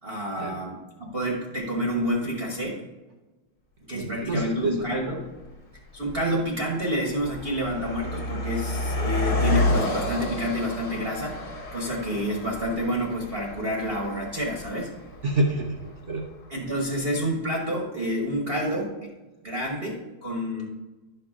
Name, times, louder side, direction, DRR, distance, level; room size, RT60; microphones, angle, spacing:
voice 1, 0.0-2.8 3.9-5.2 5.9-11.4 11.7-15.0 16.5-19.1 19.4-20.7, equal, 35° right, -3 dB, 1.3 m, -29 dB
voice 2, 3.9-4.9 15.2-16.3, right 2 dB, 60° right, 1 dB, 0.7 m, -27 dB
Car passing by, 4.4-4.5 5.3-5.5 5.8-16.2, left 2 dB, 45° left, 1.6 m, -30 dB
11.0 x 5.8 x 3.6 m, 1.2 s
omnidirectional pair, 2.3 m